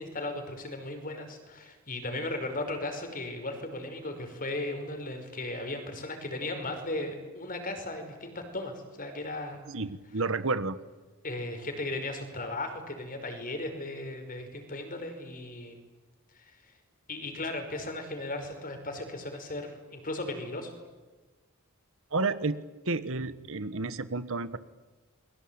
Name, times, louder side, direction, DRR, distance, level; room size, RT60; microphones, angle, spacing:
voice 1, 0.0-9.6 11.2-15.8 16.3-16.7 17.1-20.7, left 2 dB, 40° left, 6 dB, 5.2 m, -36 dB
voice 2, 9.7-10.8 22.1-22.6 22.8-24.6, right 3 dB, 60° right, 13 dB, 1.3 m, -31 dB
29.5 x 22.5 x 8.9 m, 1.2 s
head